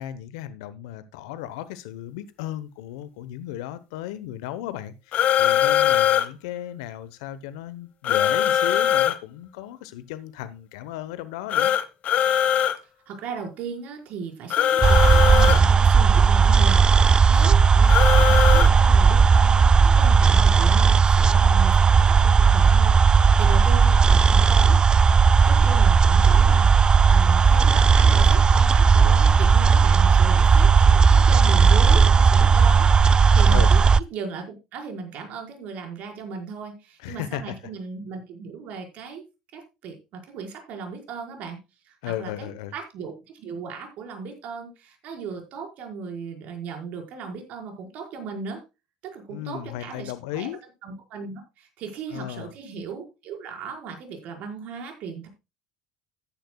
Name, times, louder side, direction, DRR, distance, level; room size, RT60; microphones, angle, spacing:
voice 1, 0.0-11.7 33.5-33.7 37.0-37.5 42.0-42.7 49.3-50.6 52.1-52.5, left 12 dB, 75° left, 1.0 m, -35 dB
sound 1, 5.1-6.3 8.0-9.2 11.5-12.8 14.5-15.6 17.9-18.7, left 10 dB, 50° left, 1.2 m, -21 dB
voice 2, 13.1-24.8 25.3-33.9 34.1-39.2 39.5-41.6 41.8-48.6 49.0-50.5 50.8-55.3, right 5 dB, 60° right, 5.0 m, -37 dB
sound 2, 14.8-34.0, right 5 dB, 30° right, 0.5 m, -16 dB
14.5 x 10.5 x 2.3 m
hypercardioid pair, 70°, 3 cm